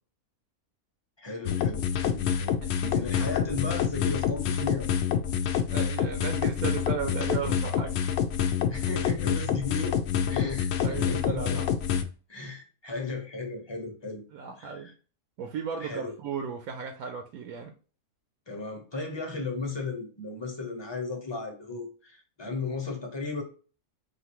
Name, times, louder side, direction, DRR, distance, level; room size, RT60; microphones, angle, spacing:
voice 1, 1.2-4.9 8.7-10.0 10.3-11.6 12.3-14.2 14.6-14.9 15.8-16.1 18.5-23.4, left 3 dB, 25° left, 0.7 m, -35 dB
sound 1, 1.5-12.0, left 8 dB, 70° left, 0.6 m, -27 dB
voice 2, 5.7-8.1 10.8-11.8 14.3-14.9 15.4-17.7, right 6 dB, 80° right, 1.1 m, -35 dB
4.9 x 2.7 x 2.9 m
omnidirectional pair, 1.6 m